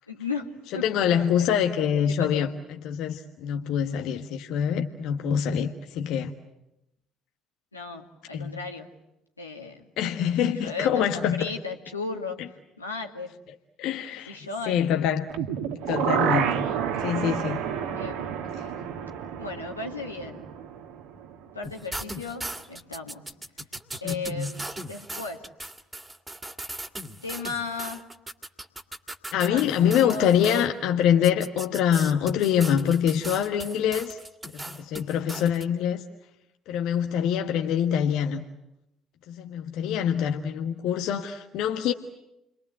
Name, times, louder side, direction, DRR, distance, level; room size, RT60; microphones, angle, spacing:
voice 1, 0.1-0.8 1.4-1.5 1.9-2.6 7.7-9.0 9.4-9.8 10.4-13.3 14.3-14.8 17.9-18.3 19.4-20.5 21.5-23.3 24.0-25.5 27.2-28.0 29.4-30.6 37.6-37.8, left 4 dB, 90° left, 2.2 m, -35 dB
voice 2, 0.7-2.5 2.8-6.3 8.3-8.5 10.0-11.4 13.8-14.4 14.7-15.3 15.9-16.7 17.0-17.6 18.6-18.7 24.0-24.5 29.3-34.2 34.5-36.0 36.7-38.4 39.3-41.9, left 9 dB, 60° left, 1.4 m, -25 dB
sound 1, 15.3-21.3 21.6-21.7, right 8 dB, 65° right, 2.0 m, -29 dB
sound 2, 21.6-30.7 31.2-35.6, right 1 dB, 15° right, 2.3 m, -38 dB
30.0 x 23.5 x 8.1 m
figure-of-eight pair, 55°, 0 cm